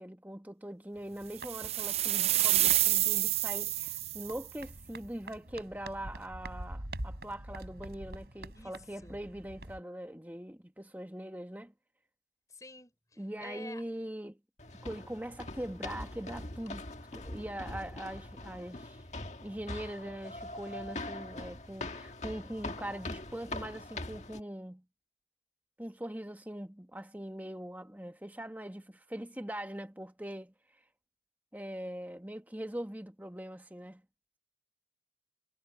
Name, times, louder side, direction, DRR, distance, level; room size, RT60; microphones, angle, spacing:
voice 1, 0.0-11.7 13.2-14.4 14.8-19.0 19.4-24.8 25.8-30.5 31.5-34.0, right 1 dB, 10° right, 1.3 m, -42 dB
sound 1, 0.9-9.8, right 1 dB, 65° right, 3.5 m, -46 dB
sound 2, 1.4-4.4, right 13 dB, 35° right, 0.4 m, -28 dB
voice 2, 12.5-13.8, left 2 dB, 20° left, 4.6 m, -49 dB
sound 3, 14.6-24.4, left 2 dB, 40° left, 1.7 m, -42 dB
head